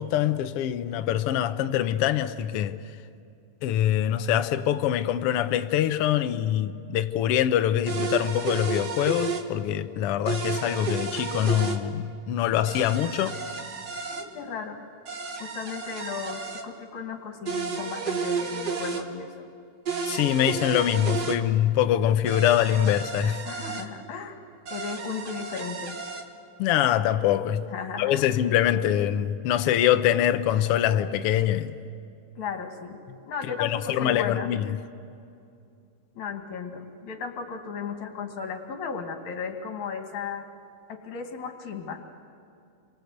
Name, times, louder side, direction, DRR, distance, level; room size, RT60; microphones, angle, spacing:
voice 1, 0.0-2.8 3.6-13.4 20.0-23.4 26.6-27.6 28.0-31.7 33.5-34.7, left 11 dB, 85° left, 1.3 m, -24 dB
sound 1, 7.9-9.5 10.3-11.8 12.7-14.3 15.1-16.6 17.5-19.0 19.9-21.4 22.3-23.9 24.7-26.2, right 5 dB, 45° right, 1.4 m, -32 dB
voice 2, 14.1-14.8 15.4-19.5 23.5-24.4 24.7-26.0 27.7-28.3 32.4-33.0 33.2-34.5 36.2-40.5 40.9-42.0, left 6 dB, 60° left, 3.5 m, -35 dB
29.5 x 23.5 x 8.1 m
omnidirectional pair, 3.9 m